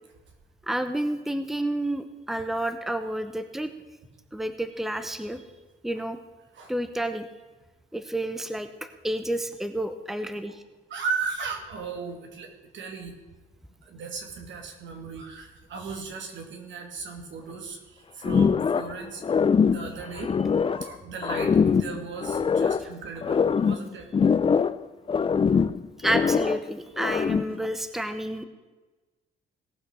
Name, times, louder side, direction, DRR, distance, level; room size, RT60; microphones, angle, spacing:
voice 1, 0.7-3.7 4.3-5.4 5.8-6.2 6.7-7.3 7.9-8.7 9.0-10.6 26.0-28.4, right 1 dB, ahead, 9 dB, 0.9 m, -30 dB
voice 2, 10.9-13.1 13.8-19.2 19.7-24.1, right 5 dB, 70° right, 4 dB, 2.3 m, -36 dB
sound 1, 18.2-19.0 19.2-20.9 21.2-22.9 23.2-24.8 25.1-26.6 27.0-27.6, left 6 dB, 25° left, 0.4 m, -23 dB
17.5 x 5.9 x 6.3 m, 1.2 s
cardioid pair, 90°, 20 cm